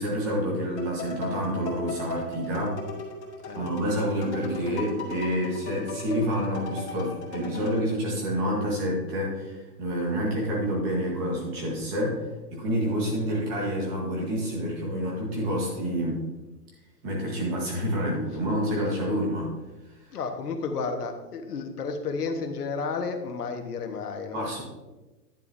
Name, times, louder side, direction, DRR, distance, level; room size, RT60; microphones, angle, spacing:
voice 1, 0.0-2.8 3.5-12.2 12.5-16.2 17.0-19.5 24.3-24.6, equal, 15° right, -3 dB, 1.4 m, -28 dB
sound 1, 0.8-7.9, left 2 dB, 45° left, 2.3 m, -37 dB
voice 2, 20.1-24.6, left 4 dB, 70° left, 4 dB, 1.6 m, -32 dB
10.5 x 9.3 x 2.7 m, 1.1 s
hypercardioid pair, 180°, 47 cm